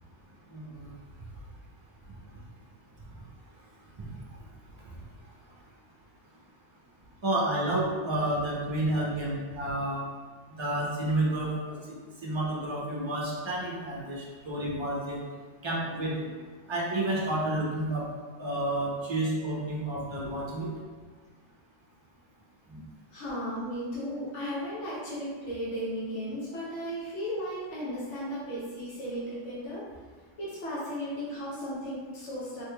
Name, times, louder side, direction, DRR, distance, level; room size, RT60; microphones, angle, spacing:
voice 1, 0.5-0.9 4.0-4.1 7.2-10.0 10.6-11.8 12.2-15.2 15.6-16.2 16.7-18.0 18.4-20.7 22.7-22.8, right 1 dB, 30° right, -5 dB, 0.6 m, -30 dB
voice 2, 23.1-29.8 30.4-32.6, equal, 75° left, -9 dB, 1.2 m, -35 dB
3.6 x 3.3 x 2.2 m, 1.5 s
omnidirectional pair, 1.2 m